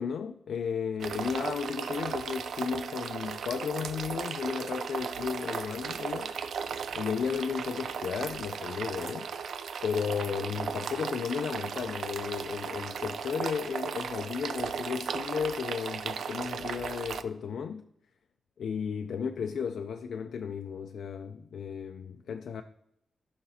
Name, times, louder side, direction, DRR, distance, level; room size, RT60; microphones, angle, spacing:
voice 1, 0.0-6.3 6.9-9.3 9.8-17.8 18.6-22.6, left 6 dB, 70° left, 0.3 m, -34 dB
sound 1, 1.0-17.2, right 6 dB, 70° right, 0.4 m, -36 dB
14.0 x 5.8 x 2.7 m
wide cardioid pair, 175°, 0 cm